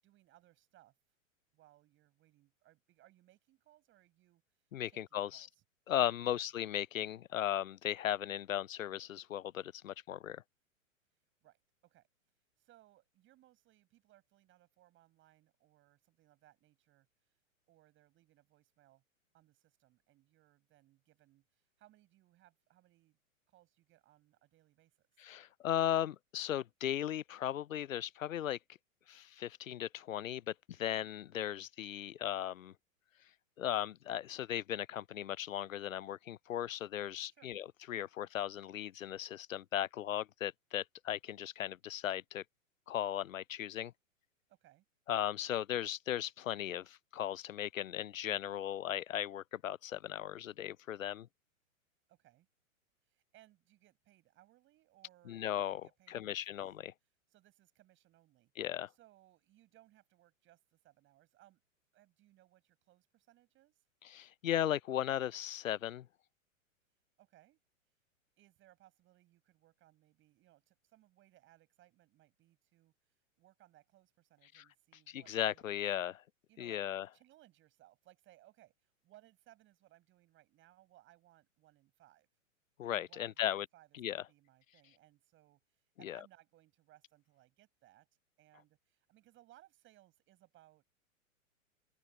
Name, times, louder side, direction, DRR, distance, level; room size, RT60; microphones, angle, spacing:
voice 1, 0.0-0.9 1.5-4.4 4.9-5.6 6.3-6.4 11.4-12.1 12.6-17.4 17.7-19.0 19.3-23.2 23.5-25.1 37.3-37.5 44.5-44.8 52.1-52.5 53.0-55.4 55.7-56.5 57.3-58.5 58.9-61.6 61.9-63.8 67.2-67.6 68.4-72.9 73.4-75.8 76.5-82.3 82.9-90.8, right 15 dB, 30° right, 7.8 m, -66 dB
voice 2, 4.7-5.5 5.9-10.4 25.2-28.6 29.1-32.7 33.6-42.4 42.9-43.9 45.1-51.3 55.3-56.9 58.6-58.9 64.0-66.1 74.5-74.6 75.1-76.2 76.6-77.1 82.8-83.7 83.9-84.2 86.0-86.2, left 11 dB, 75° left, 0.5 m, -37 dB
figure-of-eight pair, 105°, 40 cm